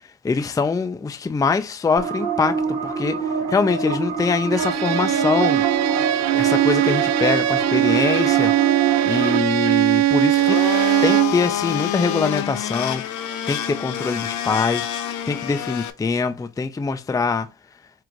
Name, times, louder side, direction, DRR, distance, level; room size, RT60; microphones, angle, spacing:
voice 1, 0.2-5.6 6.3-8.5 9.0-10.6 11.0-13.0 13.5-14.9 15.3-17.5, left 4 dB, 10° left, 0.4 m, -23 dB
sound 1, 2.0-9.4, right 5 dB, 85° right, 0.9 m, -26 dB
Bowed string instrument, 4.5-11.4, right 13 dB, 60° right, 0.4 m, -20 dB
Domestic sounds home sounds, 10.3-15.9, left 10 dB, 75° left, 0.7 m, -27 dB
4.6 x 2.5 x 3.8 m
cardioid pair, 90°, 30 cm